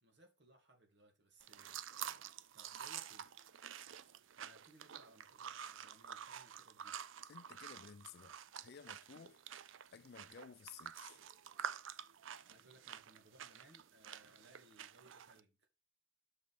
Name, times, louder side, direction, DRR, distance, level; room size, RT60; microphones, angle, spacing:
voice 1, 0.0-1.8 2.5-3.3 4.4-7.0 12.4-15.7, right 1 dB, 60° right, 2.2 m, -65 dB
sound 1, 1.4-15.4, right 9 dB, 75° right, 0.5 m, -49 dB
voice 2, 7.3-9.4 9.9-11.2, left 7 dB, 50° left, 0.4 m, -56 dB
6.4 x 5.4 x 4.8 m
head